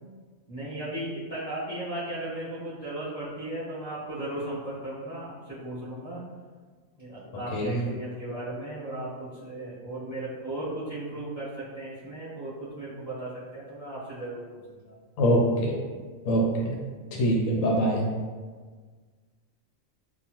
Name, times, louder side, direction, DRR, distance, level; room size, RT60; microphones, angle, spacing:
voice 1, 0.5-6.2 6.9-14.9, right 1 dB, 5° left, -13 dB, 1.0 m, -36 dB
voice 2, 7.5-7.8 15.2-15.7 16.2-16.8 17.1-18.0, right 1 dB, 75° left, -1 dB, 1.0 m, -24 dB
2.7 x 2.3 x 2.9 m, 1.5 s
omnidirectional pair, 1.4 m